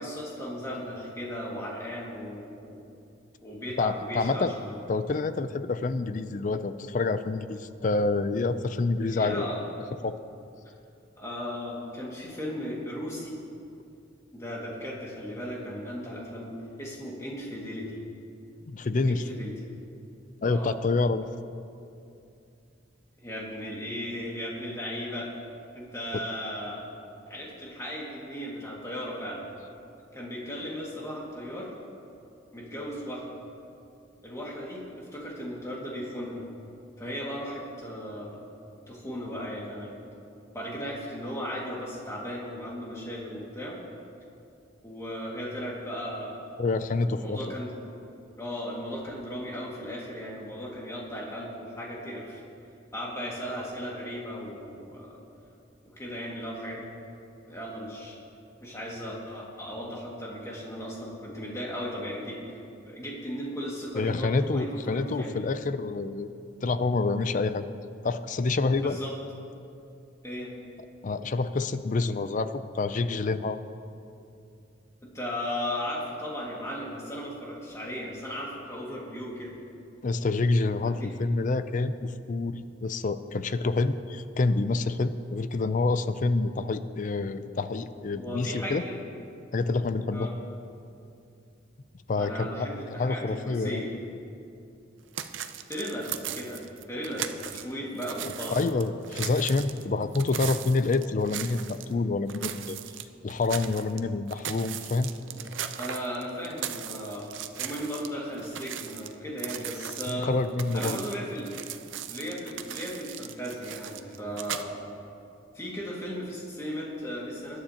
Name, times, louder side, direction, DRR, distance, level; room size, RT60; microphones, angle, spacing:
voice 1, 0.0-2.9 3.4-4.8 9.1-9.6 11.2-13.4 14.3-16.5 16.8-18.0 19.1-19.5 20.5-20.7 23.2-25.3 25.7-26.9 27.3-29.4 30.1-31.7 32.5-33.2 34.2-36.4 37.0-38.5 38.9-40.0 40.5-43.8 44.8-46.5 47.0-47.8 48.4-52.4 52.9-55.2 56.0-56.9 57.5-58.2 58.6-65.3 68.8-69.1 70.2-70.5 75.0-79.6 80.9-81.1 88.1-89.0 90.1-90.4 92.1-93.9 95.6-98.6 105.8-110.4 110.7-111.5 112.1-114.8 115.5-117.6, equal, 15° left, -4 dB, 1.9 m, -36 dB
voice 2, 3.8-4.5 4.9-9.5 10.0-10.2 18.7-19.3 20.4-21.3 46.6-47.4 64.0-67.6 68.0-69.0 71.0-73.6 80.0-88.8 89.5-90.3 92.1-93.8 98.5-102.8 103.2-105.1 110.1-111.0, left 3 dB, 40° left, 12 dB, 0.4 m, -27 dB
sound 1, 95.1-97.7 98.0-101.9 102.3-104.0 104.3-108.1 108.4-114.6, right 10 dB, 70° right, 0.5 m, -38 dB
20.0 x 11.5 x 2.9 m, 2.6 s
head